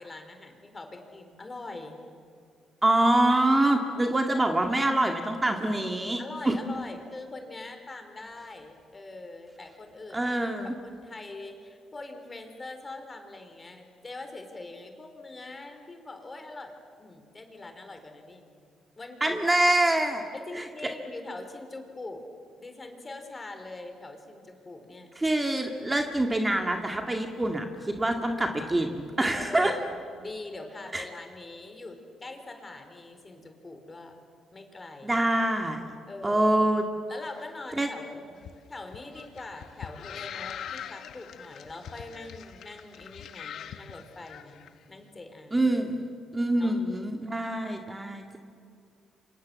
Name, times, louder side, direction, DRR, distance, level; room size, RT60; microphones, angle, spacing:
voice 1, 0.0-2.0 6.2-10.3 10.8-18.4 19.0-19.4 20.3-22.2 22.6-25.1 29.3-34.2 34.5-35.2 36.1-36.7 37.1-38.3 38.7-45.7 46.6-46.8, left 2 dB, 25° left, 6 dB, 4.2 m, -43 dB
voice 2, 2.8-6.5 10.1-10.7 19.2-20.2 20.6-20.7 25.2-29.7 30.9-31.0 35.0-35.8 36.2-36.8 37.8-37.9 45.5-46.1 46.3-48.4, right 1 dB, 15° right, 3 dB, 2.1 m, -25 dB
sound 1, 38.4-44.7, left 9 dB, 70° left, 1.3 m, -42 dB
29.0 x 26.0 x 7.7 m, 2.4 s
cardioid pair, 90°, 0 cm